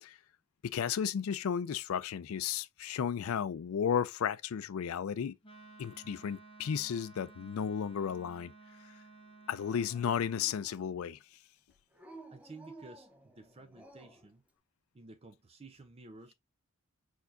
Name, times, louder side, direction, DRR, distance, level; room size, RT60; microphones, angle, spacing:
voice 1, 0.6-5.4 5.8-8.5 8.8-8.9 9.5-11.2, left 8 dB, 80° left, 0.4 m, -34 dB
Wind instrument woodwind instrument, 5.4-10.6, right 3 dB, 25° left, 1.5 m, -55 dB
Dog, 9.6-11.1 11.9-14.3, right 2 dB, 5° right, 0.8 m, -55 dB
voice 2, 12.3-14.4 14.9-16.3, right 3 dB, 30° right, 0.5 m, -53 dB
4.6 x 4.3 x 2.5 m
head